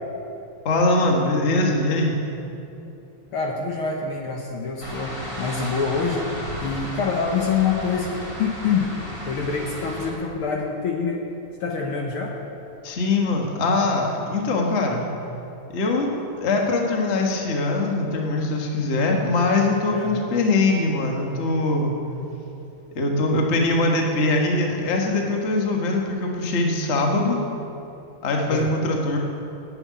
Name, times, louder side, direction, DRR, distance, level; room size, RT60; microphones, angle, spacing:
voice 1, 0.6-2.1 12.8-15.0 15.7-16.1 16.4-21.9 22.9-27.4 28.2-29.2, left 2 dB, 85° left, 1 dB, 0.6 m, -22 dB
voice 2, 3.3-6.2 6.6-8.1 8.4-8.9 9.3-11.2 11.6-12.4 19.9-20.3 28.5-28.7, left 5 dB, 70° left, 0 dB, 1.3 m, -26 dB
sound 1, 4.8-10.1, equal, 10° left, 1.5 m, -34 dB
10.5 x 7.9 x 9.5 m, 2.9 s
omnidirectional pair, 3.7 m